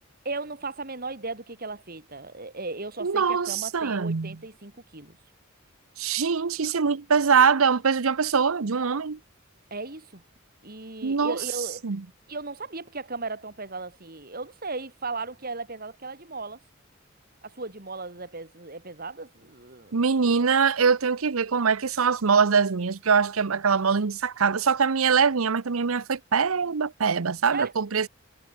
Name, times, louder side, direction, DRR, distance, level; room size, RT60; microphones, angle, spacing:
voice 1, 0.2-5.2 9.7-10.2 10.6-11.9 12.3-16.6 17.4-20.0 27.5-27.7, right 3 dB, 45° right, 3.0 m, -36 dB
voice 2, 3.0-4.4 6.0-9.2 11.0-11.4 11.8-12.0 19.9-28.1, right 5 dB, 85° right, 0.8 m, -23 dB
head